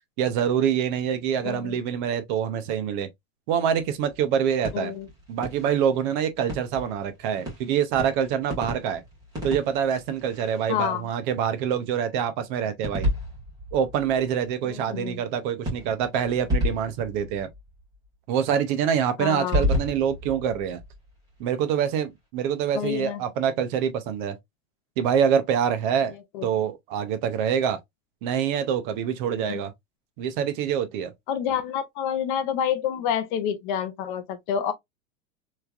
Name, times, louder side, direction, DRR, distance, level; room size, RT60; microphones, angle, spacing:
voice 1, 0.2-3.1 3.5-4.9 5.3-9.0 9.4-13.1 13.7-17.5 18.3-20.8 21.4-24.4 25.0-26.2 26.4-27.8 28.2-29.7 30.2-31.1, right 8 dB, 40° right, 0.6 m, -25 dB
voice 2, 1.4-1.8 4.7-5.1 10.7-11.1 14.6-15.2 19.2-19.7 22.8-23.2 26.3-26.5 29.3-29.7 31.3-34.7, left 9 dB, 40° left, 0.5 m, -28 dB
sound 1, 3.7-11.2 12.8-14.5 15.6-18.1 19.3-21.4, left 1 dB, 10° right, 1.7 m, -32 dB
3.3 x 3.2 x 2.3 m
supercardioid pair, 160°, 40 cm